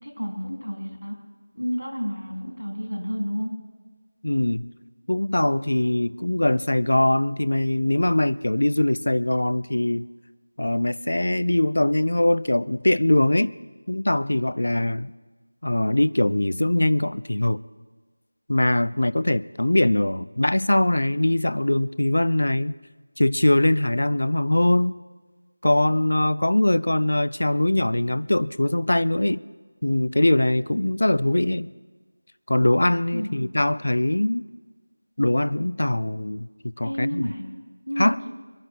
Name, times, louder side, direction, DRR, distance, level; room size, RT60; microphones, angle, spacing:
voice 1, 0.0-1.2 1.5-3.5 33.1-33.4 36.8-37.4 37.9-38.3, equal, 90° left, 4.0 m, -30 dB
voice 2, 4.2-4.7 5.1-10.0 10.6-13.5 13.9-15.1 15.6-17.6 18.5-22.8 23.2-24.9 25.6-29.4 29.8-31.7 32.5-34.4 35.2-36.5 36.8-37.2 38.0-38.2, left 1 dB, 55° left, 0.4 m, -22 dB
23.0 x 12.0 x 4.7 m
figure-of-eight pair, 170°, 0 cm